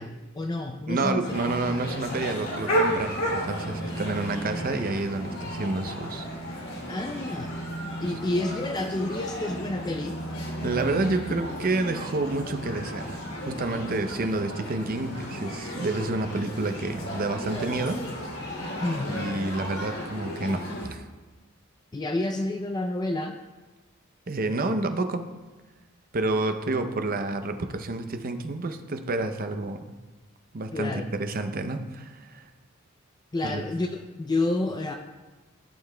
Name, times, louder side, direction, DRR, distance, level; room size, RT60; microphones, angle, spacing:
voice 1, 0.0-1.3 6.9-7.5 8.0-10.2 18.8-19.3 21.9-23.4 30.7-31.0 33.3-34.9, left 2 dB, 20° left, 4 dB, 0.4 m, -29 dB
voice 2, 0.9-6.3 10.6-18.0 19.1-21.1 24.3-25.2 26.1-29.8 30.5-32.5 33.4-33.6, right 2 dB, 45° right, 8 dB, 0.6 m, -29 dB
sound 1, 1.2-20.9, equal, 80° left, 2.8 m, -33 dB
14.5 x 7.0 x 2.2 m, 1.2 s
head